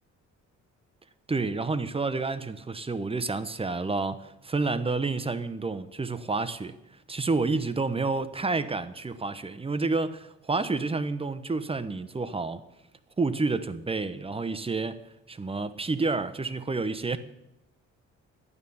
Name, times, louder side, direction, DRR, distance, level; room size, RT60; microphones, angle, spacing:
voice 1, 1.3-6.7 7.1-12.6 13.2-15.0 15.3-17.2, right 3 dB, 20° right, 1.0 m, -29 dB
12.5 x 9.3 x 7.1 m
cardioid pair, 90°, 30 cm